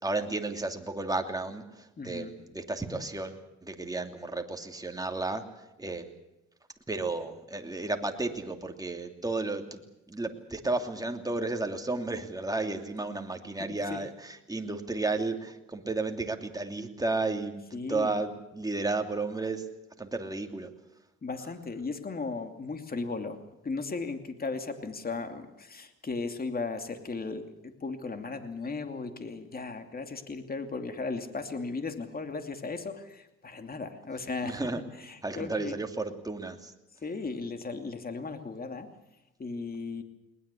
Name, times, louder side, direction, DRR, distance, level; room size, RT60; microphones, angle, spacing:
voice 1, 0.0-5.4 5.8-6.0 6.9-9.8 10.1-19.7 20.0-20.7 34.4-34.8 35.2-36.7, right 3 dB, 10° right, 4 dB, 2.9 m, -33 dB
voice 2, 2.0-2.3 13.9-14.0 17.7-18.2 21.2-34.6 35.0-35.8 37.0-38.9 39.4-40.0, left 4 dB, 30° left, 7 dB, 2.7 m, -36 dB
21.0 x 20.5 x 8.5 m, 0.92 s
cardioid pair, 90°, 30 cm